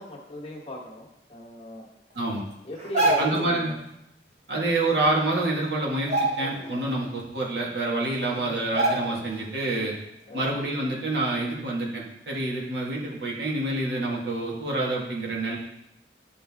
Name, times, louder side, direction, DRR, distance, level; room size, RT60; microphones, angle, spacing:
voice 1, 0.0-1.9 2.6-3.8 6.9-7.1 8.3-8.6 10.3-10.6, left 1 dB, 35° left, -2 dB, 1.5 m, -38 dB
sound 1, 2.8-3.5 5.0-5.1 5.4-5.6 6.0-6.8 7.2-7.3 8.1-8.2 8.7-9.4 9.7-9.9, right 2 dB, 40° right, 1.4 m, -26 dB
voice 2, 3.2-3.7 4.5-6.1 6.4-9.9 10.3-15.6, right 2 dB, 70° right, -3 dB, 1.9 m, -27 dB
11.5 x 3.8 x 3.6 m, 0.83 s
head